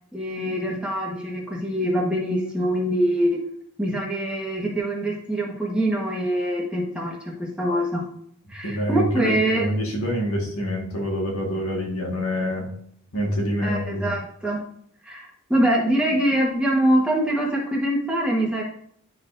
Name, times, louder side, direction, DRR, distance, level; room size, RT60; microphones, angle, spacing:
voice 1, 0.1-3.4 3.8-8.0 8.5-9.7 13.6-14.6 15.0-18.6, right 1 dB, 5° right, -3 dB, 1.2 m, -24 dB
voice 2, 8.6-12.7 13.1-14.1, equal, 80° left, 0 dB, 1.7 m, -26 dB
10.5 x 4.1 x 2.6 m, 0.65 s
head